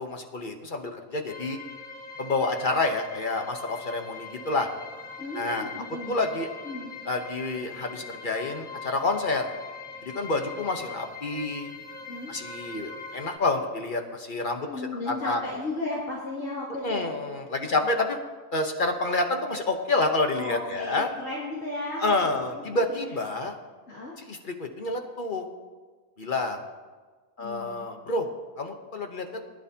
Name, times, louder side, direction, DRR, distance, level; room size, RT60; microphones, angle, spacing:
voice 1, 0.0-1.6 2.2-4.7 5.3-5.7 6.1-6.5 7.1-9.5 10.0-11.7 12.3-15.4 16.8-18.2 18.5-21.1 22.0-23.6 24.2-25.4 26.2-26.6 27.4-28.3 28.6-29.3, left 2 dB, 40° left, 4 dB, 1.0 m, -28 dB
sound 1, 1.3-13.4, left 4 dB, 5° left, 1.2 m, -42 dB
voice 2, 5.2-6.2 6.6-6.9 12.1-12.3 14.7-17.1 17.6-17.9 20.3-22.8 23.9-24.2 27.4-27.8, left 2 dB, 65° left, -8 dB, 2.8 m, -35 dB
20.0 x 11.0 x 2.8 m, 1.4 s
omnidirectional pair, 1.5 m